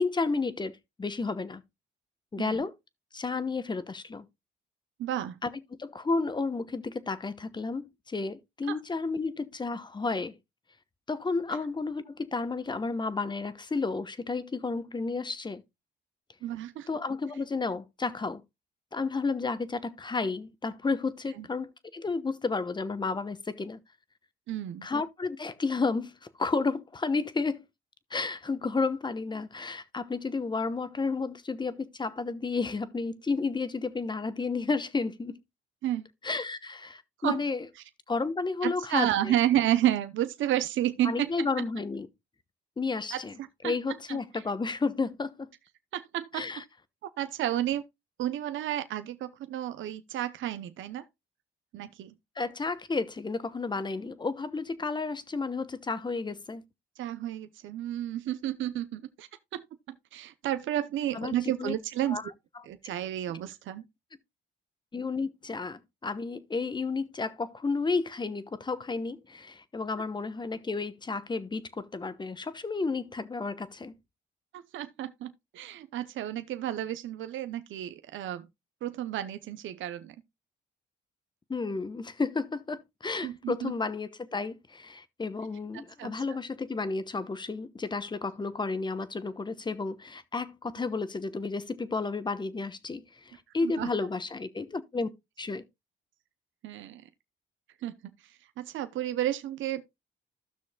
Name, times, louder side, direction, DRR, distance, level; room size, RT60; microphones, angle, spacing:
voice 1, 0.0-1.6 2.3-2.7 3.1-4.2 5.4-5.5 5.8-10.4 11.1-15.6 16.9-18.4 18.9-23.8 24.8-27.6 28.1-35.3 36.2-37.6 38.1-39.1 41.0-42.1 42.8-43.3 43.6-45.5 46.3-46.6 52.4-56.6 61.1-61.7 62.1-62.2 64.9-73.9 81.5-95.1 95.4-95.6, left 4 dB, 20° left, 1.0 m, -32 dB
voice 2, 5.0-5.4 8.7-8.8 16.4-16.9 21.4-21.5 24.5-24.9 35.8-36.1 37.2-37.4 38.6-41.6 43.1-43.7 44.1-44.2 45.9-46.6 47.0-47.8 48.2-51.0 51.7-52.1 57.0-62.2 62.7-63.8 74.5-78.5 78.8-80.1 83.2-83.7 86.0-86.4 93.6-93.9 96.6-97.0 97.8-99.9, right 12 dB, 75° right, 0.7 m, -31 dB
15.0 x 6.2 x 2.2 m
cardioid pair, 90°, 20 cm